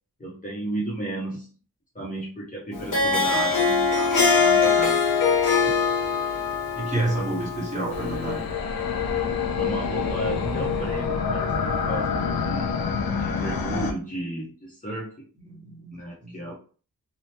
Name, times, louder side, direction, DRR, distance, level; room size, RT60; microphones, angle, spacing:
voice 1, 0.2-1.5 1.9-5.0 9.6-12.7 13.2-15.3 15.9-16.5, right 2 dB, 25° left, -5 dB, 0.7 m, -33 dB
Harp, 2.7-8.2, left 5 dB, 65° left, 1.0 m, -22 dB
voice 2, 6.7-8.4 15.4-16.5, right 2 dB, 20° right, -5 dB, 1.1 m, -29 dB
sound 1, 7.9-13.9, left 6 dB, 80° left, 0.5 m, -27 dB
2.9 x 2.0 x 3.1 m, 0.40 s
wide cardioid pair, 115°, 35 cm